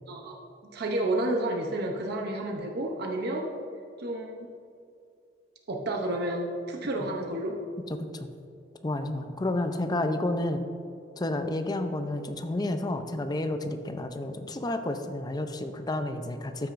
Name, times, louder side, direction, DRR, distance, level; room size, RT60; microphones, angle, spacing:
voice 1, 0.6-3.5 4.0-4.5 5.7-7.6, right 1 dB, 60° right, 1 dB, 0.7 m, -30 dB
voice 2, 8.8-10.6 11.2-16.7, left 1 dB, 20° left, 7 dB, 0.5 m, -30 dB
12.5 x 6.0 x 2.5 m, 2.5 s
head